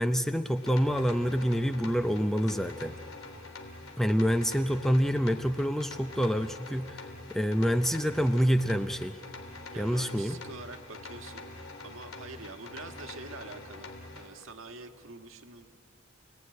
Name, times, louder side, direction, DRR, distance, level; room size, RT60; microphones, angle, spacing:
voice 1, 0.0-2.9 4.0-9.2 9.8-10.4, equal, ahead, 8 dB, 0.5 m, -27 dB
sound 1, 0.5-14.3, left 2 dB, 90° left, 3.1 m, -45 dB
voice 2, 9.7-11.5 11.8-13.9 14.2-15.7, right 3 dB, 75° right, 5 dB, 1.6 m, -45 dB
28.0 x 19.0 x 9.6 m, 2.5 s
head